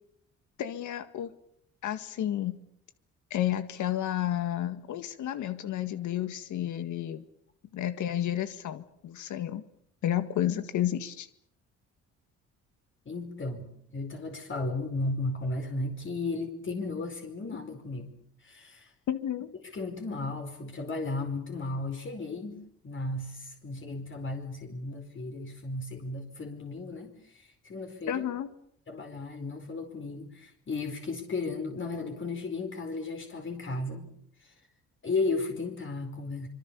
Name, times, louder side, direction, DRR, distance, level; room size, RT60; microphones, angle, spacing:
voice 1, 0.6-1.3 1.8-2.6 3.3-7.2 7.7-9.6 10.0-11.3 19.1-19.5 28.1-28.5, left 11 dB, 75° left, 10 dB, 1.9 m, -31 dB
voice 2, 13.0-18.1 18.4-18.9 19.7-28.2 28.9-34.1 34.4-34.5 35.0-36.5, left 3 dB, 40° left, 4 dB, 4.8 m, -35 dB
25.5 x 24.5 x 7.0 m, 0.71 s
cardioid pair, 90°, 30 cm